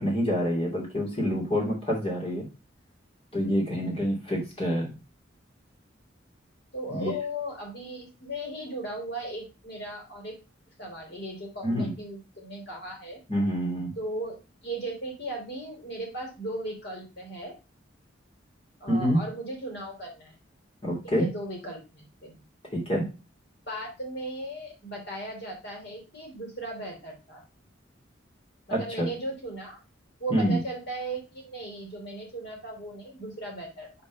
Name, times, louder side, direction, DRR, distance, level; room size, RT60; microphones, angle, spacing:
voice 1, 0.0-2.4 3.3-4.9 6.9-7.1 11.6-11.9 13.3-13.9 18.9-19.2 20.8-21.3 22.7-23.0 28.7-29.1 30.3-30.6, equal, 30° left, -2 dB, 2.7 m, -27 dB
voice 2, 6.7-10.3 10.8-13.2 14.0-14.3 14.6-17.5 18.8-20.4 21.0-22.4 23.6-27.4 28.7-29.8 30.2-33.9, right 1 dB, 55° left, 0 dB, 3.3 m, -37 dB
5.5 x 4.4 x 5.8 m, 0.30 s
head